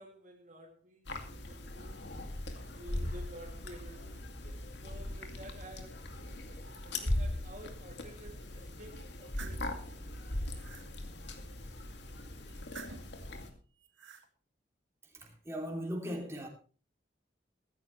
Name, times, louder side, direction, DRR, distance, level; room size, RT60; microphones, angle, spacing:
voice 1, 0.0-2.0 2.7-10.3, right 1 dB, 40° right, 2.6 m, -52 dB
sound 1, 1.1-13.5, left 1 dB, 65° left, 2.4 m, -40 dB
sound 2, 9.0-9.7 10.2-10.9 12.5-13.2 13.8-14.3, right 5 dB, 80° right, 2.1 m, -50 dB
voice 2, 15.0-16.5, equal, 15° right, 3.0 m, -38 dB
16.0 x 14.5 x 3.2 m
head